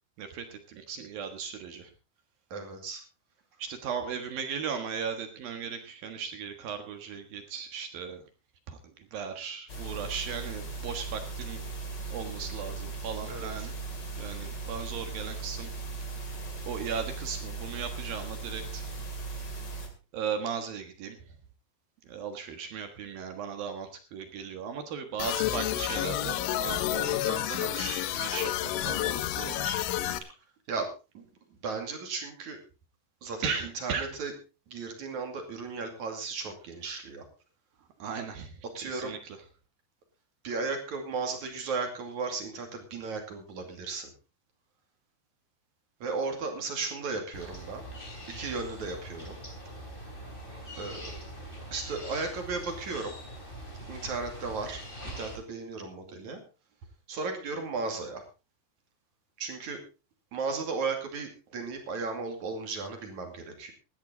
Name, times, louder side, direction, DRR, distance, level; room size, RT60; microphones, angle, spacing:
voice 1, 0.2-1.9 3.6-8.2 8.7-11.7 12.1-13.7 14.2-15.7 16.7-18.8 20.1-21.4 22.0-29.8 33.4-34.1 38.0-39.4, right 6 dB, 60° right, 7 dB, 2.7 m, -37 dB
voice 2, 2.5-3.0 13.3-13.7 30.7-30.9 31.1-31.2 31.6-32.6 33.2-34.3 34.7-37.3 38.7-39.1 40.4-44.1 46.0-47.8 48.3-49.4 50.0-50.1 50.8-51.1 51.7-53.1 53.9-56.4 57.1-58.2 59.4-59.8 60.3-63.7, right 4 dB, 45° right, 4 dB, 3.2 m, -35 dB
sound 1, 9.7-19.9, right 4 dB, 30° left, 2.5 m, -38 dB
sound 2, 25.2-30.2, left 13 dB, 80° left, 3.3 m, -30 dB
sound 3, 47.3-55.4, equal, 10° left, 3.5 m, -43 dB
17.5 x 12.0 x 3.9 m, 0.32 s
omnidirectional pair, 5.5 m